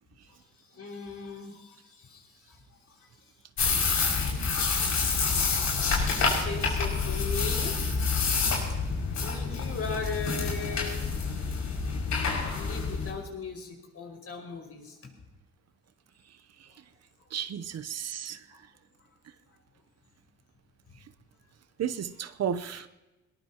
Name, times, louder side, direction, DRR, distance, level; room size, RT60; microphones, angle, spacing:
voice 1, 0.7-3.3 6.1-8.5 9.2-11.1 12.6-15.0 18.5-18.6 19.0-19.1 22.7-22.8, left 4 dB, 50° left, 1 dB, 5.7 m, -39 dB
sound 1, 3.6-13.1, left 4 dB, 70° left, 5.9 m, -28 dB
voice 2, 17.3-18.4 21.8-22.9, right 8 dB, 55° right, 13 dB, 0.9 m, -33 dB
21.0 x 20.5 x 2.9 m, 1.1 s
cardioid pair, 90°, 30 cm